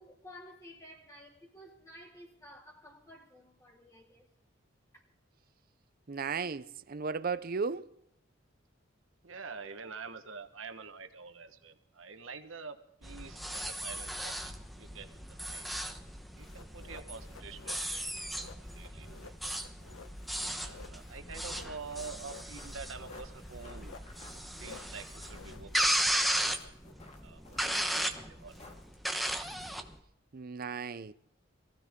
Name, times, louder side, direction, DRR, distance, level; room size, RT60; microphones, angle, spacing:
voice 1, 0.0-4.3, equal, 15° left, 3.8 m, -53 dB
voice 2, 6.1-7.9 30.3-31.1, right 5 dB, 50° right, 0.6 m, -35 dB
voice 3, 9.2-16.1 16.3-18.3 18.6-19.6 20.4-23.9 24.6-26.8 27.2-28.7, right 4 dB, 80° right, 1.3 m, -47 dB
sound 1, 13.0-30.0, right 1 dB, ahead, 1.1 m, -36 dB
sound 2, 16.4-26.9, left 4 dB, 85° left, 1.2 m, -53 dB
sound 3, 21.3-29.2, left 2 dB, 35° left, 2.4 m, -55 dB
23.0 x 15.5 x 3.7 m
head